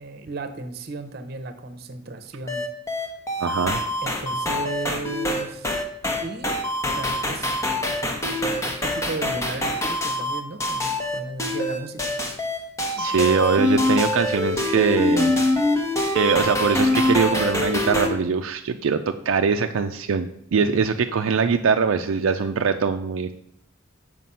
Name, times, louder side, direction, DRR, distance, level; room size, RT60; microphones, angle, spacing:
voice 1, 0.0-2.7 4.0-5.8 6.2-6.6 7.0-7.5 8.7-12.2 12.5-12.7 12.9-13.3 20.6-20.8, right 3 dB, 50° right, 9 dB, 0.8 m, -35 dB
sound 1, 2.5-18.1, left 1 dB, 15° left, 0.9 m, -24 dB
voice 2, 3.4-3.8 13.0-15.3 16.1-23.3, right 5 dB, 80° right, 6 dB, 0.4 m, -22 dB
7.6 x 5.1 x 5.5 m, 0.71 s
head